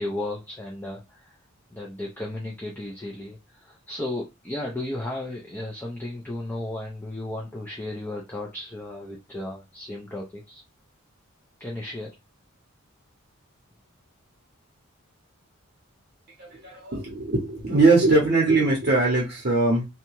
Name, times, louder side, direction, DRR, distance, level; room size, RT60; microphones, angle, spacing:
voice 1, 0.0-1.4 1.7-10.6 11.6-12.1, left 1 dB, 10° left, -2 dB, 0.4 m, -34 dB
voice 2, 16.4-19.8, right 3 dB, 45° right, -2 dB, 0.7 m, -21 dB
2.7 x 2.2 x 2.9 m, 0.23 s
head